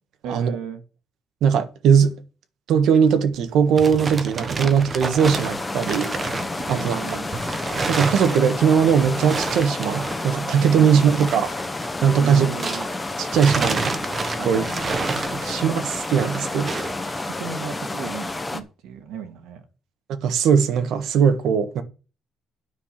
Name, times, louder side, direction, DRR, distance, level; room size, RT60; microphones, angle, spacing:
voice 1, 0.2-0.8 4.4-4.7 6.7-7.3 10.8-11.2 12.2-12.9 14.4-15.0 15.9-16.0 17.2-19.6, right 7 dB, 85° right, 1.9 m, -35 dB
voice 2, 1.4-2.2 2.7-6.2 6.7-7.2 7.9-11.5 12.0-12.5 13.2-13.9 14.3-14.6 15.3-16.7 17.0-17.2 20.2-21.8, right 7 dB, 70° right, 1.4 m, -19 dB
sound 1, 3.4-13.0 13.3-17.0, right 4 dB, 25° right, 1.2 m, -30 dB
sound 2, 5.2-18.6, left 2 dB, 10° left, 1.0 m, -30 dB
9.6 x 5.8 x 7.5 m
cardioid pair, 155°, 0 cm